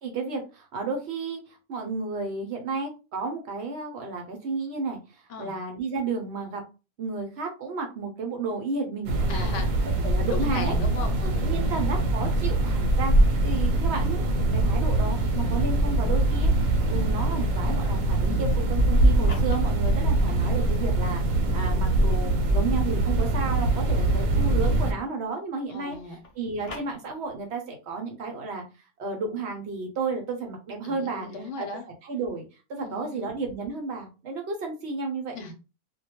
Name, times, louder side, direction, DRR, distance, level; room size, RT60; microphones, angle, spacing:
voice 1, 0.0-6.6 7.0-9.5 10.0-10.7 11.2-13.1 13.4-14.2 14.5-26.0 26.4-28.6 29.0-31.3 31.6-31.7 32.0-32.4 32.7-35.3, right 4 dB, 65° right, 3 dB, 0.7 m, -32 dB
sound 1, 9.0-24.9, right 1 dB, 85° right, 1.0 m, -23 dB
voice 2, 9.3-9.7 10.3-11.7 25.7-26.2 30.8-31.8 32.8-33.3 35.3-35.5, left 3 dB, 70° left, 5 dB, 0.9 m, -36 dB
sound 2, 19.1-21.0 21.5-25.3 25.5-27.5, left 3 dB, 45° left, 0.4 m, -47 dB
2.2 x 2.1 x 2.8 m, 0.31 s
omnidirectional pair, 1.4 m